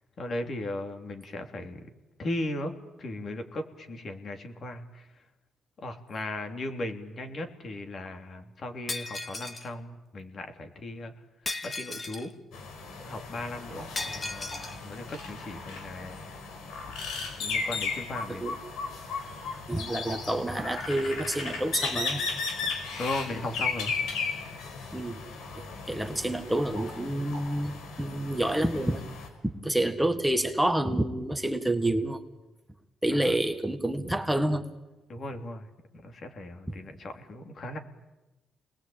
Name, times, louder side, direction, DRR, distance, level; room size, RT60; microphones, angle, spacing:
voice 1, 0.2-1.9 2.2-2.7 3.0-5.1 5.8-11.1 11.6-12.3 13.0-16.3 17.4-18.5 23.0-23.9 33.1-33.3 35.1-35.7 35.9-37.8, left 1 dB, 50° left, 5 dB, 3.2 m, -37 dB
Shatter, 8.9-9.7 11.5-12.3 14.0-14.8, left 2 dB, 30° left, 1.9 m, -36 dB
sound 1, 12.5-29.3, left 4 dB, 85° left, 4.9 m, -36 dB
voice 2, 19.7-22.2 24.9-25.2 25.9-29.0 29.4-32.2 33.0-34.6, right 1 dB, 5° right, 6 dB, 1.7 m, -28 dB
29.0 x 20.5 x 8.9 m, 1.1 s
cardioid pair, 90°, 0 cm